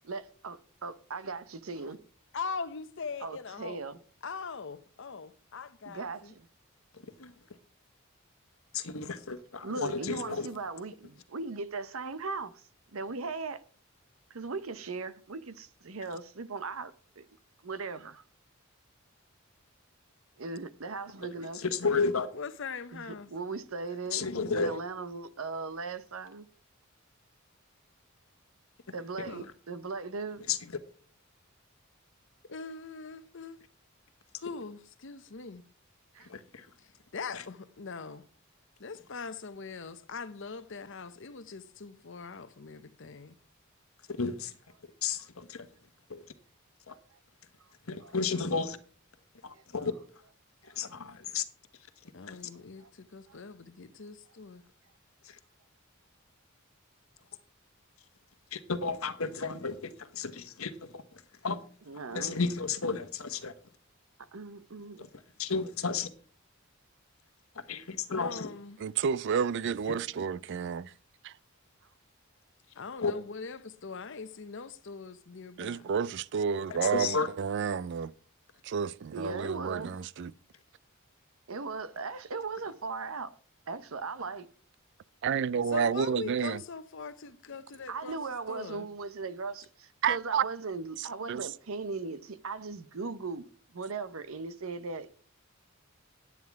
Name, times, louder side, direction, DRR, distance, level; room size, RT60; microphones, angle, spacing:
voice 1, 0.0-2.0 3.2-4.0 5.9-6.5 9.6-12.6 12.9-13.6 14.3-17.3 17.6-18.2 20.4-21.6 22.9-24.2 24.5-26.5 28.9-30.4 36.1-36.3 45.2-45.3 46.9-47.0 48.0-48.1 49.5-49.6 50.6-50.8 52.8-52.9 53.3-53.4 61.9-62.4 64.3-65.1 79.1-79.9 81.5-83.3 83.7-84.5 87.9-93.4 93.7-95.1, right 4 dB, 80° right, 0.8 m, -38 dB
voice 2, 2.3-3.8 4.2-6.3 7.2-7.4 22.3-23.3 29.2-29.5 32.5-33.6 34.4-35.6 36.8-38.2 38.8-43.4 52.1-54.6 68.2-68.8 72.8-75.9 85.7-88.2 88.5-88.9, left 5 dB, 65° left, 0.9 m, -41 dB
voice 3, 8.7-10.5 21.5-22.3 24.1-24.8 30.5-30.6 36.3-36.7 44.2-44.5 45.0-45.7 46.1-46.2 46.9-47.0 47.9-48.8 49.4-49.9 50.8-51.4 52.3-52.4 58.5-61.0 61.4-61.6 62.1-63.5 65.0-65.1 65.4-66.1 67.7-68.5 73.0-73.1 76.7-77.3, left 4 dB, 90° left, 1.1 m, -32 dB
voice 4, 68.8-70.9 71.2-71.3 75.6-78.1 78.6-80.3 85.2-86.6 90.0-90.4 91.0-91.5, right 7 dB, 60° right, 0.4 m, -30 dB
9.5 x 9.4 x 4.6 m
head